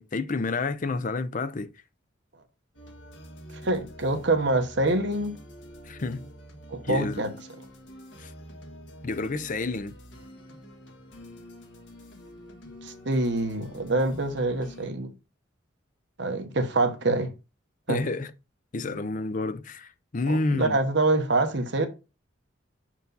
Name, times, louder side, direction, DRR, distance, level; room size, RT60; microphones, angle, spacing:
voice 1, 0.0-1.7 5.9-6.2 6.8-7.3 8.2-8.3 9.0-9.9 17.9-18.3 18.7-20.8, left 3 dB, 45° left, 0.6 m, -29 dB
sound 1, 2.7-14.9, equal, 70° left, 1.5 m, -47 dB
voice 2, 3.5-5.4 6.7-7.3 12.8-15.1 16.2-17.3 17.9-18.0 20.3-21.9, right 2 dB, 65° right, 1.0 m, -25 dB
6.8 x 4.5 x 3.9 m
head